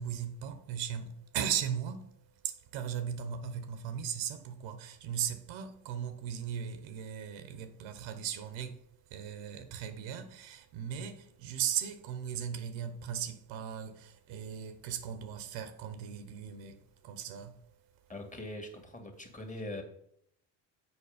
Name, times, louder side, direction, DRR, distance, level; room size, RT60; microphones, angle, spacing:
voice 1, 0.0-2.1 2.4-17.6, right 9 dB, 70° right, 1.0 m, -37 dB
voice 2, 18.1-19.8, left 1 dB, 15° left, 1.9 m, -42 dB
7.2 x 4.8 x 5.0 m
hypercardioid pair, 70°, 48 cm